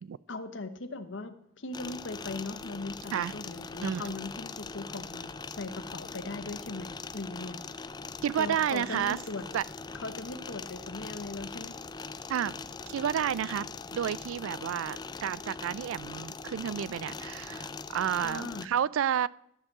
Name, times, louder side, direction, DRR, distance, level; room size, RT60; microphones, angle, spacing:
voice 1, 0.3-7.6 8.4-9.5 10.0-11.7 18.2-18.7, left 3 dB, 70° left, 11 dB, 1.0 m, -39 dB
sound 1, 1.7-18.6, left 4 dB, 20° left, 0.4 m, -41 dB
voice 2, 3.8-4.1 8.2-9.2 9.5-9.6 12.3-12.5 12.9-19.3, right 9 dB, 85° right, 21 dB, 0.3 m, -31 dB
14.0 x 5.4 x 7.3 m, 0.76 s
head